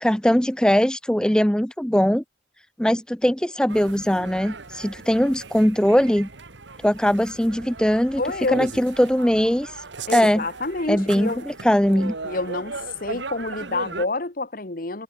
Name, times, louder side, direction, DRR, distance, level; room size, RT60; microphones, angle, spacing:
voice 1, 0.0-2.2 2.8-6.3 6.8-8.2 8.5-9.8 10.1-10.4 10.9-12.1, equal, 5° left, 0.6 m, -20 dB
sound 1, 3.7-14.1, right 4 dB, 70° right, 1.6 m, -37 dB
voice 2, 8.2-8.6 10.1-11.4 12.2-12.7 13.0-15.0, left 2 dB, 45° left, 1.4 m, -28 dB
head